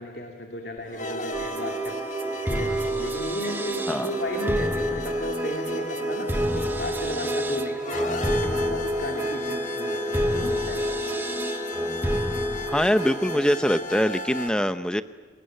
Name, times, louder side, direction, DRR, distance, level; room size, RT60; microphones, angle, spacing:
voice 1, 0.0-1.9 2.5-2.7 3.0-11.0, left 1 dB, 60° left, 2 dB, 2.5 m, -34 dB
sound 1, 0.8-14.5, left 1 dB, 45° left, 1.9 m, -36 dB
sound 2, 1.3-13.5, equal, 10° right, 1.1 m, -28 dB
voice 2, 12.7-15.0, equal, 5° left, 11 dB, 0.8 m, -23 dB
29.0 x 19.5 x 9.1 m, 1.5 s
head